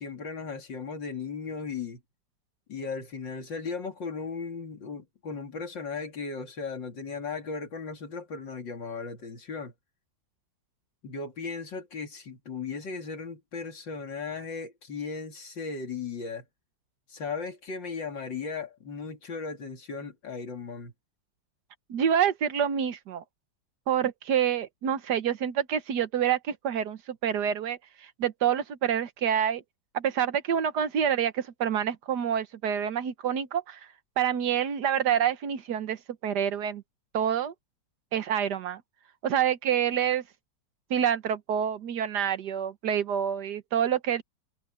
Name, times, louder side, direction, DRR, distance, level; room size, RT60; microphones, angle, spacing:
voice 1, 0.0-2.0 2.7-9.7 11.0-16.4 17.1-20.9, left 5 dB, 80° left, 3.3 m, -36 dB
voice 2, 21.9-23.2 23.9-29.6 29.9-33.8 34.2-36.8 37.1-37.5 38.1-38.8 39.2-40.2 40.9-44.2, right 9 dB, 65° right, 1.6 m, -27 dB
omnidirectional pair, 2.0 m